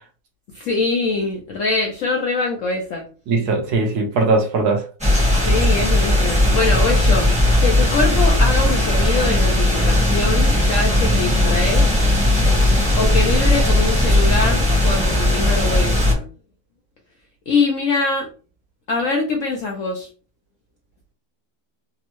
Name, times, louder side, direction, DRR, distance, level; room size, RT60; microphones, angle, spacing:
voice 1, 0.5-3.0 5.4-7.4 7.6-11.9 12.9-16.3 17.5-18.3 18.9-20.1, left 3 dB, 70° left, 0.7 m, -23 dB
voice 2, 3.3-4.8, right 3 dB, 65° right, 1.2 m, -19 dB
sound 1, 5.0-16.1, left 1 dB, 5° right, 0.7 m, -17 dB
3.5 x 2.1 x 2.9 m
omnidirectional pair, 1.9 m